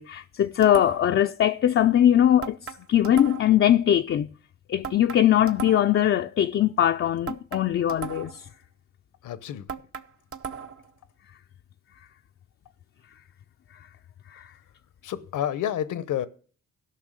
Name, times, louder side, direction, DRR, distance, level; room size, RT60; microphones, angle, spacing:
voice 1, 0.0-2.6 2.9-4.3 4.7-8.5 14.3-14.5, left 11 dB, 45° left, 0.4 m, -21 dB
sound 1, 0.6-1.2 2.4-3.6 4.8-6.1 7.3-8.5 9.7-10.9, right 6 dB, 45° right, 0.8 m, -37 dB
voice 2, 9.2-9.7 15.0-16.3, left 10 dB, 75° left, 0.8 m, -29 dB
12.5 x 5.7 x 6.4 m
cardioid pair, 75°, 31 cm